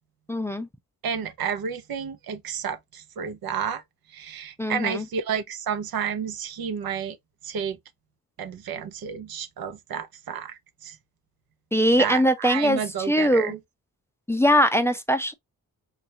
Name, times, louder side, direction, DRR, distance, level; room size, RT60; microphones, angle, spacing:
voice 1, 0.3-0.7 4.6-5.1 11.7-13.6 14.3-15.3, equal, 5° left, 0.4 m, -21 dB
voice 2, 1.0-3.8 4.1-7.2 7.4-7.8 8.4-11.0 12.0-13.6, right 7 dB, 80° right, 0.7 m, -31 dB
3.2 x 2.4 x 2.7 m
cardioid pair, 80°, 36 cm